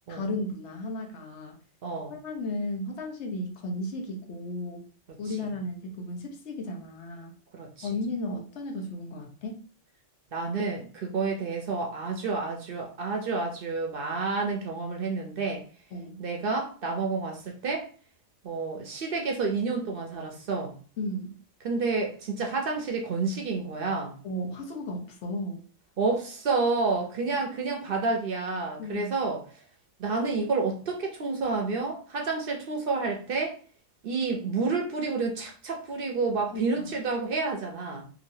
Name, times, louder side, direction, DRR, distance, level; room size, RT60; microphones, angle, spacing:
voice 1, 0.1-1.5 2.1-4.8 5.2-7.3 7.8-9.6 15.9-16.2 21.0-21.4 24.2-25.6 28.8-29.1 36.5-36.8, left 1 dB, 70° left, 2 dB, 1.0 m, -34 dB
voice 2, 1.8-2.2 5.3-5.5 7.5-7.9 10.3-15.6 16.2-17.9 18.4-20.7 21.6-24.2 26.0-29.4 30.0-33.6 34.0-38.1, right 4 dB, 60° right, 2 dB, 0.7 m, -29 dB
3.0 x 2.5 x 2.6 m, 0.40 s
omnidirectional pair, 1.2 m